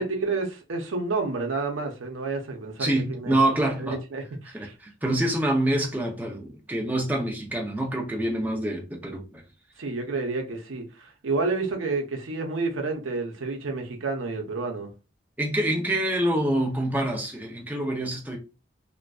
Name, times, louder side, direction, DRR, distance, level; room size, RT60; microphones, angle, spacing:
voice 1, 0.0-3.4 3.8-4.7 9.8-14.9, right 3 dB, 85° right, 0.6 m, -30 dB
voice 2, 2.8-4.0 4.5-9.4 15.4-18.4, right 1 dB, 10° right, 0.4 m, -26 dB
2.5 x 2.2 x 2.3 m
head